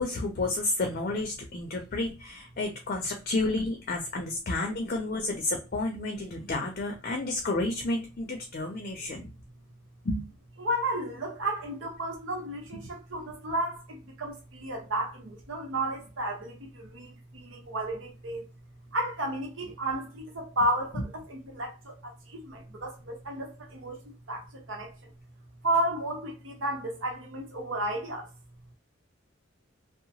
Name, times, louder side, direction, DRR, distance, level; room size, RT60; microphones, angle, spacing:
voice 1, 0.0-9.3 10.0-10.2, left 2 dB, 45° left, 0.5 m, -31 dB
voice 2, 10.6-18.4 18.9-25.1 25.6-28.3, right 1 dB, 75° right, 0.9 m, -33 dB
2.8 x 2.0 x 2.8 m
head